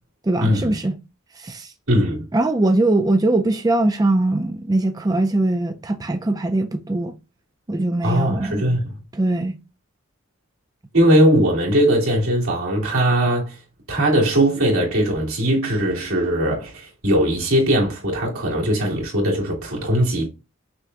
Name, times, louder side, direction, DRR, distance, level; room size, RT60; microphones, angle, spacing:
voice 1, 0.2-1.0 1.4-1.7 2.3-7.2 7.7-8.6 9.1-9.6, right 2 dB, 20° right, 0.4 m, -21 dB
voice 2, 1.9-2.3 8.0-9.0 10.9-13.6 13.9-20.3, equal, 90° right, 2.3 m, -19 dB
6.0 x 2.2 x 3.7 m
head